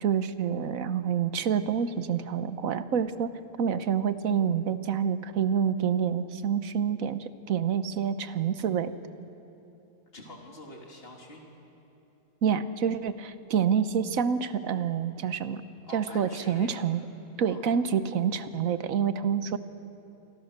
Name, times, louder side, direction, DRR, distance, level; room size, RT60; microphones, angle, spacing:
voice 1, 0.0-3.3 3.6-8.9 12.4-15.6 15.9-17.0 17.4-19.6, right 7 dB, 70° right, 11 dB, 1.4 m, -27 dB
voice 2, 10.1-11.4 15.8-16.8 17.4-17.6, left 1 dB, 40° left, -1 dB, 3.5 m, -45 dB
28.0 x 25.5 x 6.7 m, 2.9 s
omnidirectional pair, 1.5 m